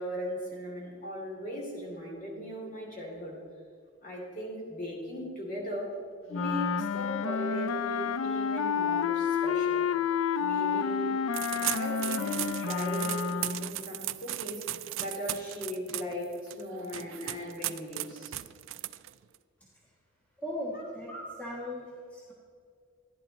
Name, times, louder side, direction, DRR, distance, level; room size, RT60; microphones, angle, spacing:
voice 1, 0.0-3.4 4.0-5.9 6.3-9.8 10.4-11.2 11.7-14.6 15.0-18.3 20.7-20.9, equal, 40° left, -2 dB, 2.8 m, -38 dB
Wind instrument woodwind instrument, 6.3-13.7, left 6 dB, 85° left, 0.4 m, -30 dB
sound 1, 11.3-19.4, right 15 dB, 70° right, 0.4 m, -37 dB
voice 2, 20.4-22.3, left 1 dB, 5° left, -5 dB, 1.4 m, -38 dB
14.0 x 10.5 x 4.1 m, 2.1 s
head